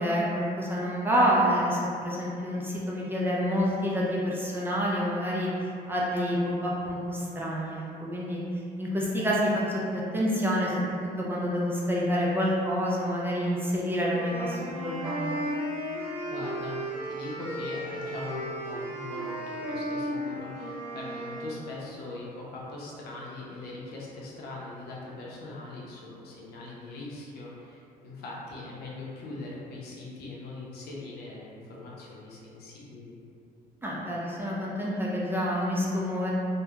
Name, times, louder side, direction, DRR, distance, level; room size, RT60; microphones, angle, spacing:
voice 1, 0.0-8.4 8.8-15.5 33.8-36.3, equal, 15° right, -6 dB, 0.4 m, -28 dB
sound 1, 14.1-21.6, equal, 45° right, 0.9 m, -34 dB
voice 2, 16.3-33.1, left 2 dB, 70° left, -5 dB, 0.6 m, -41 dB
2.8 x 2.2 x 2.3 m, 2.5 s
cardioid pair, 110°, 17 cm